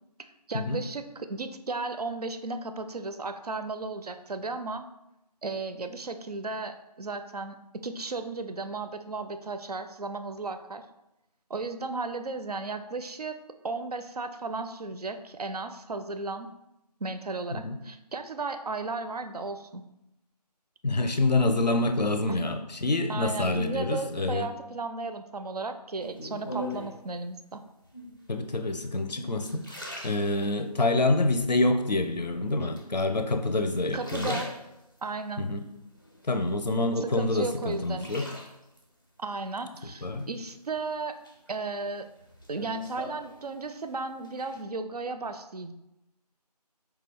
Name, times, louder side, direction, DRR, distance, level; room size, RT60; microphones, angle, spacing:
voice 1, 0.5-4.8 5.4-7.6 7.8-10.8 11.5-13.4 13.6-16.5 17.0-19.8 23.1-27.6 33.9-34.5 35.0-35.5 37.0-38.3 39.2-41.2 41.5-42.1 42.5-45.7, right 3 dB, 70° right, 8 dB, 0.4 m, -35 dB
voice 2, 20.8-24.5 28.3-34.4 35.4-35.6 36.2-38.3 40.0-40.3, left 2 dB, 90° left, 7 dB, 0.5 m, -27 dB
sound 1, 26.0-27.1 27.8-28.3 28.9-30.8 31.3-32.0 32.8-33.4 33.8-35.1 35.6-36.8 37.2-38.8 40.2-40.8 41.2-43.9 44.1-44.6, equal, 30° left, 0.4 m, -41 dB
4.5 x 2.3 x 3.4 m, 0.89 s
figure-of-eight pair, 165°, 21 cm